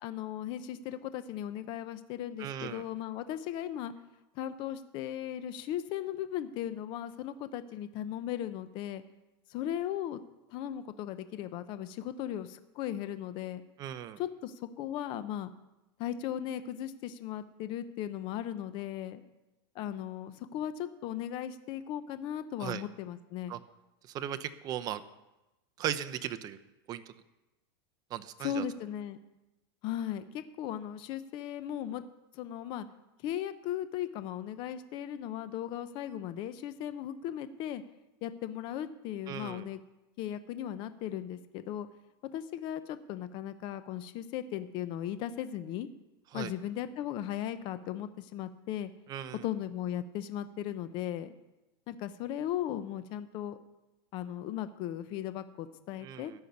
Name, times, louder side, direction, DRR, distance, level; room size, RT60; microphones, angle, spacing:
voice 1, 0.0-3.9 4.3-9.0 9.5-10.2 10.5-13.6 14.2-15.5 16.0-19.2 19.7-23.5 28.4-29.2 29.8-32.0 32.3-32.9 33.2-37.8 38.2-39.8 40.2-41.9 42.3-45.9 46.3-48.9 49.4-51.3 51.9-53.6 54.1-56.3, left 11 dB, 35° left, 12 dB, 0.7 m, -37 dB
voice 2, 2.4-2.8 13.8-14.2 22.6-22.8 23.5-23.6 24.1-25.0 25.8-26.6 26.9-27.0 28.1-28.6 39.3-39.6 46.3-46.5 49.1-49.4 56.0-56.3, right 11 dB, 30° right, 12 dB, 0.7 m, -37 dB
13.5 x 5.7 x 9.4 m, 0.98 s
supercardioid pair, 155°, 13 cm